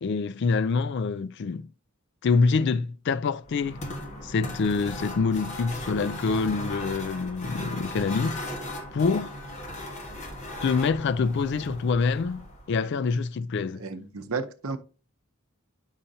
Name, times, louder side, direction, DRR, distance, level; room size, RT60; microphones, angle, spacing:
voice 1, 0.0-1.7 2.2-3.8 4.2-8.4 8.9-9.3 10.6-13.8, left 4 dB, 55° left, 0.3 m, -26 dB
sound 1, 3.4-12.8, left 1 dB, 30° left, 1.4 m, -37 dB
voice 2, 13.8-14.8, right 4 dB, 75° right, 0.7 m, -32 dB
8.7 x 5.6 x 2.7 m
head